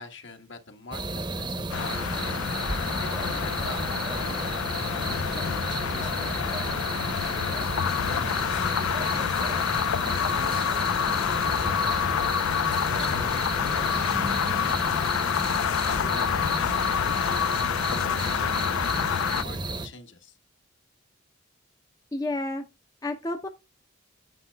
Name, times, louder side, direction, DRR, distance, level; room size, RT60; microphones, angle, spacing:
voice 1, 0.0-2.4 3.0-4.0 4.4-7.7 8.0-9.0 10.0-15.0 15.8-20.4, left 3 dB, 55° left, 1.4 m, -44 dB
sound 1, 0.9-19.9, right 2 dB, 20° right, 0.8 m, -33 dB
sound 2, 1.7-19.4, left 8 dB, 85° left, 0.4 m, -27 dB
voice 2, 22.1-22.6 23.0-23.5, left 2 dB, 15° left, 0.6 m, -30 dB
9.7 x 7.6 x 2.3 m
head